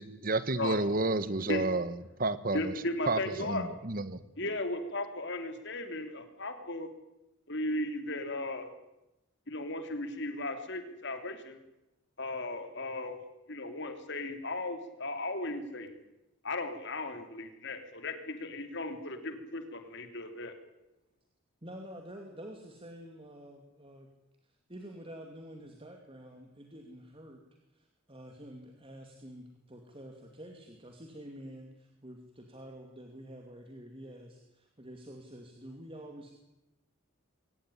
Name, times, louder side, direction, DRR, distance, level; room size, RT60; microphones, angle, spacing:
voice 1, 0.0-2.7 3.1-4.2, right 2 dB, 40° right, 14 dB, 1.4 m, -31 dB
voice 2, 2.5-3.7 4.4-6.9 7.5-8.7 9.5-11.6 12.2-13.2 13.5-15.9 16.4-20.5, left 2 dB, 55° left, 7 dB, 3.1 m, -36 dB
voice 3, 21.6-24.1 24.4-27.4 27.7-36.3, equal, 25° right, 3 dB, 2.6 m, -48 dB
23.0 x 19.0 x 10.0 m, 0.92 s
head